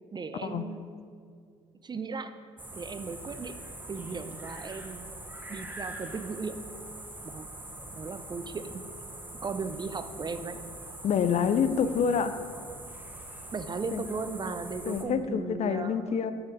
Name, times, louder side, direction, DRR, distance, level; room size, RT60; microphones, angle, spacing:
voice 1, 0.1-0.9 1.8-2.4 2.7-3.6 3.9-5.1 5.5-6.7 7.2-7.5 7.9-8.8 9.4-10.6 13.5-16.1, right 4 dB, 30° right, 10 dB, 0.5 m, -36 dB
sound 1, 2.6-15.0, right 1 dB, 10° right, 1.0 m, -43 dB
voice 2, 11.0-12.5 13.9-14.0 14.9-16.3, left 7 dB, 45° left, 11 dB, 0.5 m, -27 dB
6.4 x 5.9 x 5.3 m, 2.2 s
hypercardioid pair, 55°, 15 cm